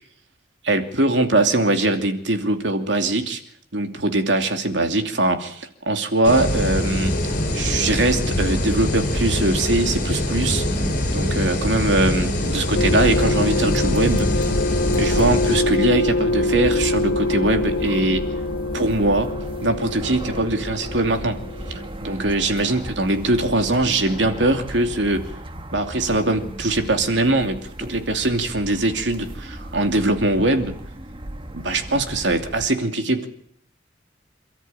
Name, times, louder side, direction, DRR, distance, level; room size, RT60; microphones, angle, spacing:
voice 1, 0.6-3.4 3.7-7.1 7.5-10.6 11.1-14.3 15.0-18.3 18.7-19.3 19.6-21.4 21.7-25.3 25.7-30.7 31.5-33.3, right 2 dB, 70° right, 6 dB, 2.8 m, -22 dB
sound 1, 6.2-15.6, left 1 dB, 45° left, 6.1 m, -23 dB
sound 2, 12.7-21.9, left 2 dB, 80° left, 0.8 m, -24 dB
sound 3, 12.8-32.7, right 1 dB, 30° right, 1.6 m, -36 dB
28.0 x 13.5 x 9.1 m, 0.66 s
head